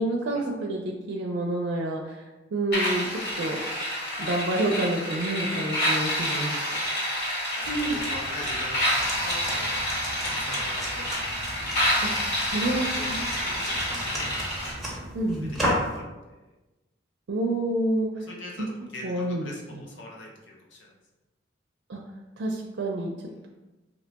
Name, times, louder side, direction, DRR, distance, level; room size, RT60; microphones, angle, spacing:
voice 1, 0.0-3.6 4.2-6.5 7.7-8.0 12.5-13.2 15.1-15.6 17.3-18.3 18.6-18.7 19.0-19.8 21.9-22.0 22.4-23.1, right 1 dB, 75° right, 0 dB, 0.4 m, -28 dB
sound 1, 2.7-14.7, equal, 55° left, 0.9 m, -28 dB
voice 2, 6.1-7.0 7.5-8.9 9.2-9.8 10.3-11.5 12.5-14.5 15.5-16.5 18.2-20.9, left 1 dB, 70° left, -2 dB, 0.6 m, -42 dB
sound 2, 7.6-16.0, equal, ahead, 0.6 m, -35 dB
3.0 x 2.2 x 3.8 m, 1.1 s
head